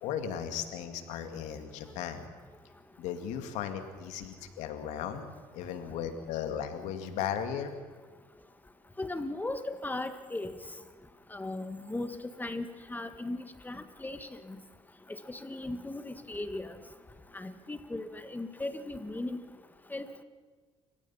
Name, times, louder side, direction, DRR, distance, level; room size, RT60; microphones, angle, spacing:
voice 1, 0.0-2.3 3.0-7.7, left 8 dB, 80° left, 7 dB, 2.2 m, -36 dB
voice 2, 9.0-10.5 11.3-14.2 14.5-14.6 15.3-16.7 17.3-19.4 19.9-20.2, left 2 dB, 15° left, 9 dB, 1.9 m, -37 dB
29.5 x 16.5 x 5.7 m, 1.5 s
supercardioid pair, 80°, 12 cm